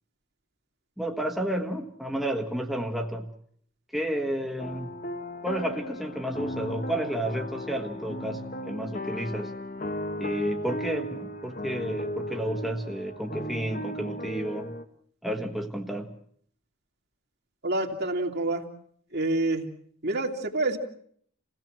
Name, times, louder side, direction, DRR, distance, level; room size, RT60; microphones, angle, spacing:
voice 1, 1.0-3.3 3.9-4.9 5.4-9.5 10.2-14.7 15.2-16.1, right 1 dB, ahead, 1 dB, 1.4 m, -31 dB
sound 1, 4.6-14.8, left 1 dB, 40° left, 1.3 m, -36 dB
voice 2, 17.6-18.6 19.1-19.7 20.0-20.8, right 2 dB, 50° right, 3 dB, 2.6 m, -27 dB
29.0 x 17.0 x 7.6 m, 0.64 s
head